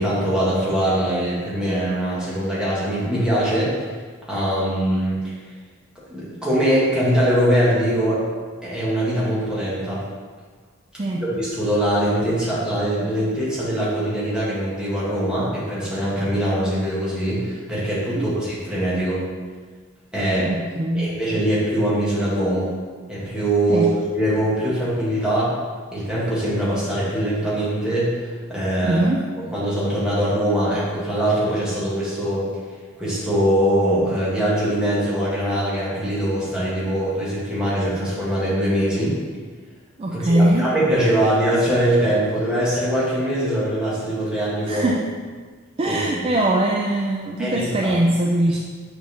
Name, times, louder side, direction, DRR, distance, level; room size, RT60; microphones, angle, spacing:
voice 1, 0.0-3.7 4.3-5.3 6.1-8.2 8.6-10.0 11.2-19.2 20.1-20.5 20.9-22.7 23.1-25.5 25.9-28.2 28.5-29.0 29.5-32.5 33.0-39.1 40.1-44.9 45.8-46.3 47.4-47.9, right 1 dB, 5° right, -9 dB, 1.8 m, -22 dB
voice 2, 20.4-21.1 23.7-23.9 28.8-29.2 40.0-40.7 44.7-45.0 45.8-48.6, right 1 dB, 25° right, 0 dB, 0.4 m, -21 dB
7.7 x 4.4 x 3.5 m, 1.5 s
head